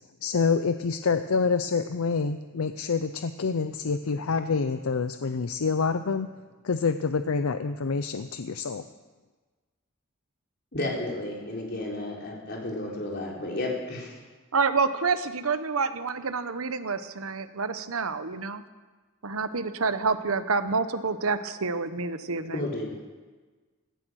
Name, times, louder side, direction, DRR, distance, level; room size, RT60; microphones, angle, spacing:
voice 1, 0.2-6.3 6.6-8.8, left 5 dB, 85° left, 10 dB, 0.6 m, -27 dB
voice 2, 10.7-14.2 22.5-22.9, left 1 dB, 50° left, -2 dB, 3.9 m, -32 dB
voice 3, 14.5-18.6 19.2-22.7, right 4 dB, 85° right, 11 dB, 0.9 m, -28 dB
17.5 x 13.0 x 6.3 m, 1.3 s
head